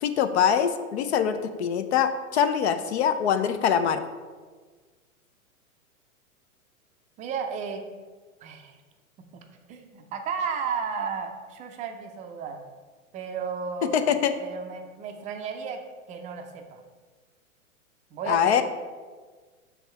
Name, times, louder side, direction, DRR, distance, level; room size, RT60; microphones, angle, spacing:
voice 1, 0.0-4.0 13.8-14.3 18.3-18.6, left 8 dB, 50° left, 10 dB, 0.5 m, -23 dB
voice 2, 7.2-7.8 8.4-8.8 9.7-12.6 13.1-15.8 16.1-16.8 18.1-18.6, right 6 dB, 20° right, 4 dB, 0.5 m, -33 dB
6.9 x 3.6 x 5.4 m, 1.4 s
hypercardioid pair, 105°, 43 cm